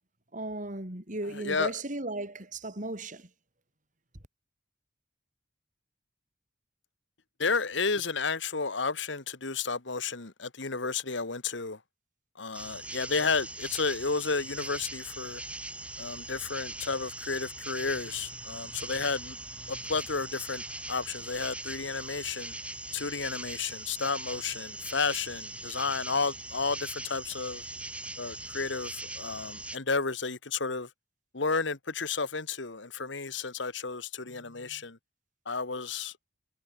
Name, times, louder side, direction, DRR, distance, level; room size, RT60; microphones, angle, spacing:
voice 1, 0.3-3.3, right 2 dB, 40° right, 3.4 m, -36 dB
voice 2, 1.4-1.7 7.4-11.8 12.4-15.4 16.0-19.4 19.7-20.6 20.9-22.5 22.9-27.6 28.2-28.9 29.2-30.9 31.3-35.0 35.5-36.1, left 4 dB, 70° left, 1.7 m, -32 dB
sound 1, 12.5-29.8, right 2 dB, 5° right, 6.1 m, -41 dB
head